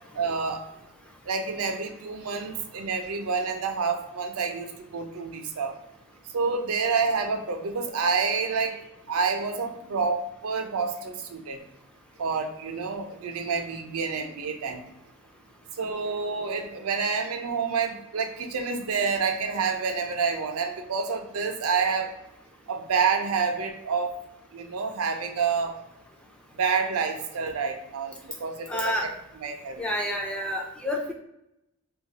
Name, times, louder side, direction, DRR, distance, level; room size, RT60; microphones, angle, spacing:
voice 1, 0.1-0.6 1.3-5.7 6.3-8.8 9.1-11.6 12.2-14.8 15.8-22.1 22.7-24.1 24.5-25.8 26.5-28.9 29.4-29.8, right 5 dB, 80° right, 4 dB, 0.5 m, -28 dB
voice 2, 28.7-29.1 29.8-31.1, left 1 dB, 5° left, 0 dB, 0.3 m, -29 dB
2.3 x 2.3 x 3.8 m, 0.85 s
head